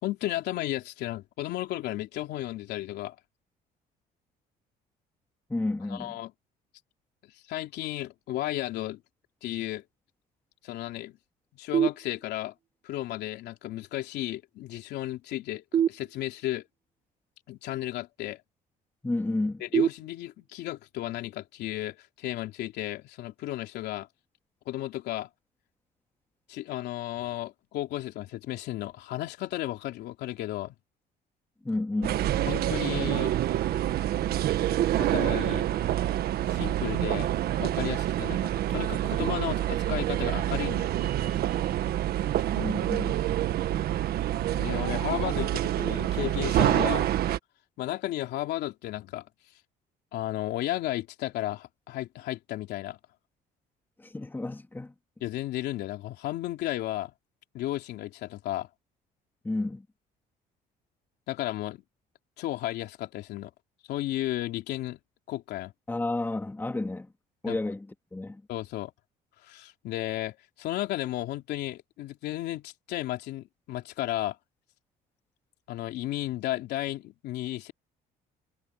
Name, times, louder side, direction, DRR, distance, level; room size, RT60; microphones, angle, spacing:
voice 1, 0.0-3.1 5.9-6.3 7.2-9.0 9.4-9.8 10.6-11.2 11.5-12.5 12.8-16.6 17.5-18.4 19.6-24.1 24.6-25.3 26.5-30.7 32.5-33.3 35.0-35.7 36.5-37.3 37.6-41.1 44.5-47.1 47.8-49.2 50.1-53.0 55.2-57.1 57.5-58.7 61.3-61.8 62.4-63.5 63.9-65.0 65.3-65.7 67.5-67.6 68.5-68.9 69.4-74.4 75.7-77.7, left 15 dB, 80° left, 3.3 m, -34 dB
voice 2, 5.5-6.2 19.0-19.6 31.6-32.2 42.5-43.3 54.0-54.9 59.4-59.9 65.9-67.1 67.4-68.4, left 2 dB, 10° left, 2.5 m, -31 dB
sound 1, 11.7-12.7 15.7-16.7 19.7-20.7, right 9 dB, 45° right, 1.2 m, -29 dB
sound 2, 32.0-47.4, right 12 dB, 65° right, 1.4 m, -27 dB
cardioid pair, 110°, 17 cm